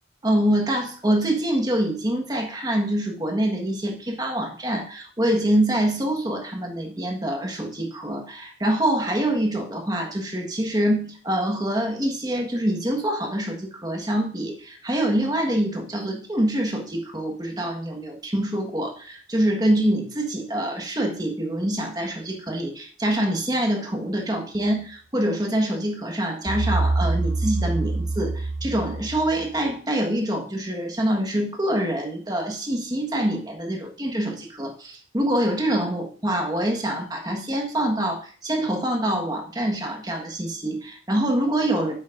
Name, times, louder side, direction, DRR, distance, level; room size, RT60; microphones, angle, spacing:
voice 1, 0.2-41.9, right 1 dB, 20° right, 2 dB, 1.4 m, -25 dB
sound 1, 26.5-29.6, right 2 dB, 80° right, 1.3 m, -25 dB
9.2 x 7.9 x 2.5 m, 0.43 s
head